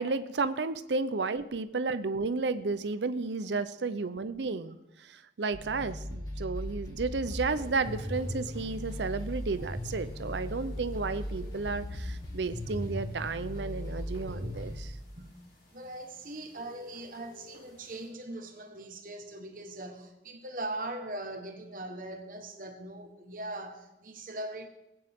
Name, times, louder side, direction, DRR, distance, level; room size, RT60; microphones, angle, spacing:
voice 1, 0.0-14.9, right 4 dB, 85° right, 0.6 m, -32 dB
sound 1, 5.5-14.8, equal, 20° left, 1.8 m, -38 dB
sound 2, 7.4-18.1, left 3 dB, 65° left, 6.0 m, -55 dB
voice 2, 15.7-24.7, right 1 dB, 50° right, 1.3 m, -40 dB
19.5 x 9.4 x 3.6 m
head